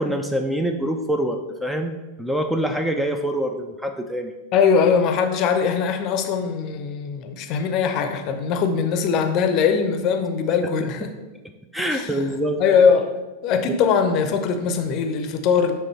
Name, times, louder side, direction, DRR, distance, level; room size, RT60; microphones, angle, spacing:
voice 1, 0.0-4.3 11.7-12.6, right 1 dB, 5° right, 5 dB, 0.4 m, -25 dB
voice 2, 4.5-11.1 11.9-12.2 12.6-13.1 13.4-15.7, left 6 dB, 40° left, 7 dB, 0.6 m, -21 dB
7.8 x 3.5 x 4.3 m, 1.2 s
figure-of-eight pair, 90°, 0 cm